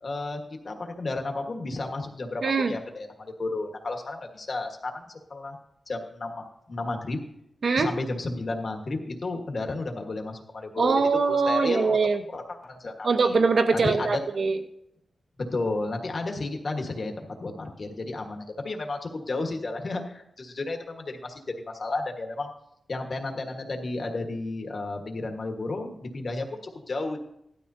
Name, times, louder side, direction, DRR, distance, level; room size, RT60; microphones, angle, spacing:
voice 1, 0.0-5.6 5.9-7.2 7.8-10.9 11.3-12.0 12.3-13.3 13.7-14.2 15.4-22.5 22.9-27.2, left 2 dB, 45° left, 3 dB, 1.5 m, -32 dB
voice 2, 2.4-2.8 7.6-7.9 10.8-12.2 13.0-14.6, right 4 dB, 60° right, 7 dB, 1.0 m, -22 dB
17.0 x 12.5 x 2.8 m, 0.78 s
wide cardioid pair, 175°, 0 cm